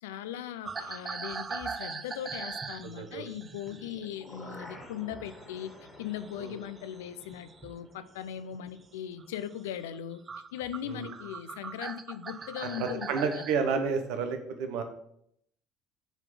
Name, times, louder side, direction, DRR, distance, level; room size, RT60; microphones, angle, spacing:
voice 1, 0.0-5.7 6.0-10.2 10.5-13.5, left 10 dB, 75° left, 12 dB, 0.4 m, -39 dB
sound 1, 0.6-5.4 5.7-7.8 8.4-8.7 9.2-9.4 9.9-10.0 10.3-13.5, right 5 dB, 30° right, 0.5 m, -41 dB
voice 2, 2.8-3.2 6.4-6.6 10.9-11.0 12.8-14.8, right 5 dB, 65° right, 6 dB, 1.0 m, -31 dB
sound 2, 3.6-9.7 10.0-10.1, left 1 dB, 25° left, 1.8 m, -51 dB
6.9 x 4.1 x 5.6 m, 0.71 s
figure-of-eight pair, 60°, 0 cm